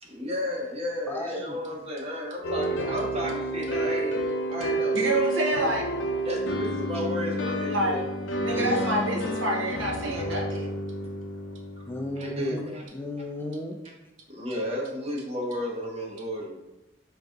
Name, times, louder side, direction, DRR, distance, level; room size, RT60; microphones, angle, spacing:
voice 1, 0.0-4.2 4.5-5.2 6.2-8.0 8.5-8.7 10.0-10.1 12.2-12.8 14.3-16.6, equal, 35° right, -1 dB, 0.8 m, -33 dB
voice 2, 1.1-1.6 8.5-9.0 11.9-13.8, left 1 dB, 10° left, 3 dB, 0.3 m, -34 dB
sound 1, 2.4-12.2, right 1 dB, 75° left, 0.6 m, -30 dB
voice 3, 4.9-5.8 7.7-8.0 8.4-10.8, right 1 dB, 85° right, 0 dB, 0.8 m, -27 dB
3.9 x 2.7 x 3.5 m, 1.0 s
head